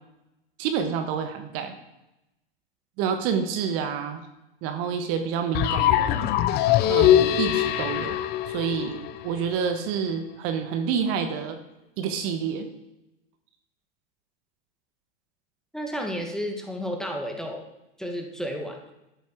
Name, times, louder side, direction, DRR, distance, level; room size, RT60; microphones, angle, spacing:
voice 1, 0.6-1.7 3.0-4.2 4.6-6.3 6.9-8.2 8.5-9.0 9.2-11.6 12.0-12.7, right 7 dB, 45° right, 7 dB, 1.4 m, -28 dB
sound 1, 5.5-9.5, left 12 dB, 35° left, 0.6 m, -22 dB
voice 2, 15.7-17.6 18.0-18.8, equal, ahead, 2 dB, 1.6 m, -32 dB
12.5 x 7.1 x 4.6 m, 0.92 s
hypercardioid pair, 110°, 30 cm